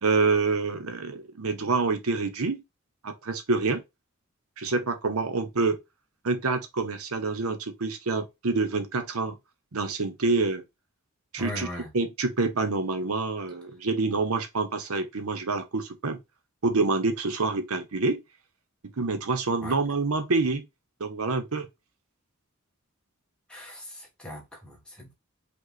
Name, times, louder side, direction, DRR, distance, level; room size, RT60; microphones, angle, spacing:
voice 1, 0.0-2.6 3.0-3.8 4.6-5.8 6.2-9.4 9.7-10.6 11.3-11.7 11.9-16.2 16.6-18.2 19.0-20.6 21.0-21.7, right 3 dB, 80° right, 0.9 m, -27 dB
voice 2, 11.4-11.9 19.6-19.7 23.5-25.1, left 1 dB, 5° left, 1.6 m, -39 dB
5.3 x 2.4 x 4.0 m
head